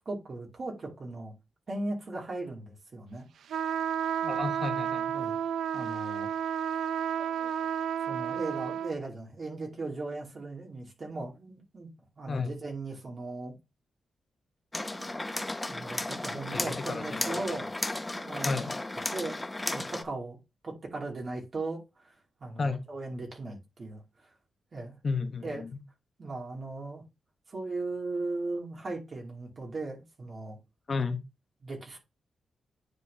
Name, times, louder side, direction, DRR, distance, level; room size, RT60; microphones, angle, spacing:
voice 1, 0.1-1.3 1.7-3.2 5.1-5.4 5.7-6.3 7.2-7.5 8.1-11.9 12.2-13.5 15.6-17.7 18.1-18.6 19.1-20.4 20.6-22.1 22.4-24.0 24.7-25.0 25.4-25.6 26.2-27.0 27.5-30.6 31.6-32.0, right 2 dB, 45° right, 2.5 m, -38 dB
sound 1, 3.5-8.9, right 9 dB, 85° right, 0.4 m, -31 dB
voice 2, 4.2-5.1 12.3-12.5 16.5-17.6 18.4-18.7 22.6-22.8 25.0-25.8 30.9-31.2, left 4 dB, 40° left, 1.1 m, -33 dB
sound 2, 14.7-20.0, left 2 dB, 15° left, 0.7 m, -34 dB
9.6 x 4.0 x 2.8 m
cardioid pair, 105°, 0 cm